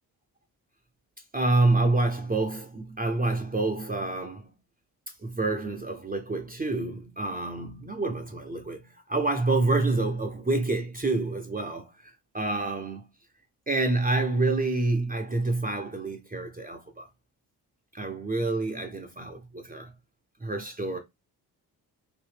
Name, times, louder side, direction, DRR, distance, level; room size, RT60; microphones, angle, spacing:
voice 1, 1.3-4.5 5.2-13.1 13.7-17.1 17.9-19.9 20.4-21.0, right 2 dB, 20° right, 0.8 m, -28 dB
2.9 x 2.6 x 3.3 m
hypercardioid pair, 40°, 47 cm